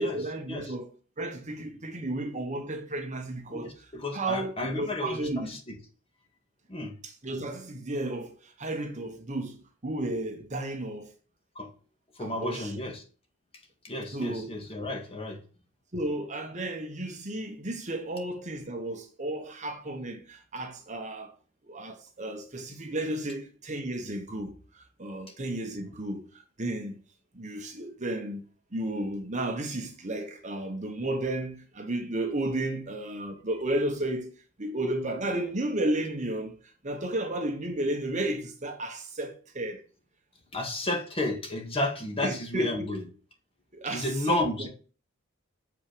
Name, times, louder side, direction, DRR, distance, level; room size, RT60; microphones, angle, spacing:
voice 1, 0.0-3.7 4.1-5.6 7.0-11.1 12.2-12.7 14.1-14.5 15.9-21.3 21.7-27.0 27.3-28.4 28.7-34.3 34.6-36.6 36.8-39.8 42.2-42.7 43.7-44.7, right 1 dB, 35° right, 1.3 m, -33 dB
voice 2, 3.5-5.6 6.7-6.9 11.6-11.7 12.2-13.0 13.8-15.4 25.8-25.9 40.5-43.0 43.9-44.7, left 1 dB, 30° left, 1.8 m, -32 dB
7.2 x 5.3 x 5.1 m
head